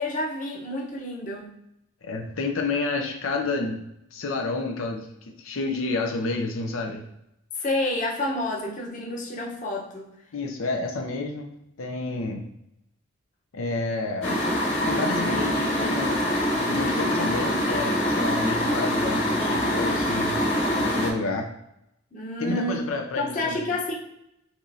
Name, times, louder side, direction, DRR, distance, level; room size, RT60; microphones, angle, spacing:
voice 1, 0.0-1.5 7.6-10.1 22.1-22.9 23.2-23.9, left 1 dB, 40° left, -2 dB, 0.9 m, -29 dB
voice 2, 2.0-7.0 10.3-11.5 11.8-12.5 13.5-14.4 14.8-16.2 16.5-20.3 20.8-21.5 22.4-23.6, left 3 dB, 85° left, 2 dB, 0.6 m, -30 dB
sound 1, 14.2-21.1, equal, 65° left, 1.7 m, -24 dB
6.0 x 3.1 x 2.7 m, 0.81 s
head